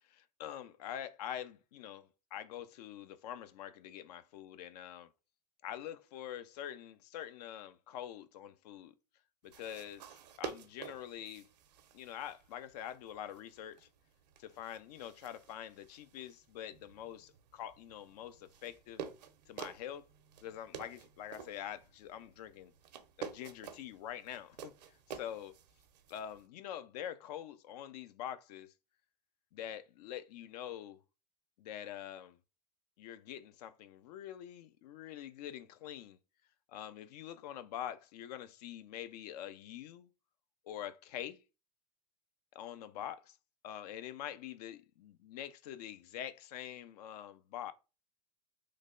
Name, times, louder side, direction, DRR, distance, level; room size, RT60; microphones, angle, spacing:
voice 1, 0.1-5.1 5.6-8.9 9.4-11.5 11.9-13.9 14.4-19.0 19.5-20.1 20.4-22.7 23.2-25.5 26.1-28.7 29.5-31.0 31.6-32.4 33.0-36.2 36.7-40.1 40.6-41.4 42.5-43.4 43.6-47.7, left 10 dB, 70° left, 0.5 m, -45 dB
sound 1, 9.4-26.5, right 8 dB, 80° right, 0.6 m, -51 dB
3.2 x 2.2 x 3.7 m
hypercardioid pair, 105°, 21 cm